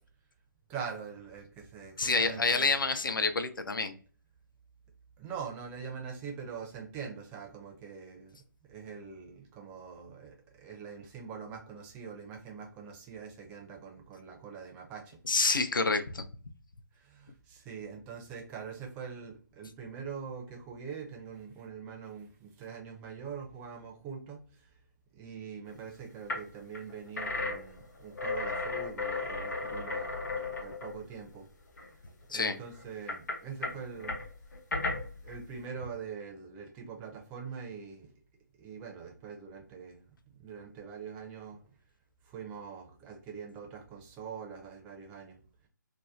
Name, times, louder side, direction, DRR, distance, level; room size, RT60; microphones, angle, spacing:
voice 1, 0.7-2.8 5.2-8.4 8.7-15.2 16.9-24.7 25.1-31.5 32.3-34.2 35.2-38.1 38.6-40.0 40.3-41.6 42.2-45.4, right 6 dB, 15° right, 2 dB, 0.4 m, -43 dB
voice 2, 2.0-3.9 15.3-16.2 32.3-32.6, left 3 dB, 85° left, 9 dB, 0.4 m, -28 dB
sound 1, 25.7-25.8 26.3-26.5 26.7-31.4 31.8-31.9 32.7-35.4, left 3 dB, 60° left, 0.9 m, -35 dB
2.7 x 2.0 x 2.2 m, 0.42 s
figure-of-eight pair, 150°, 11 cm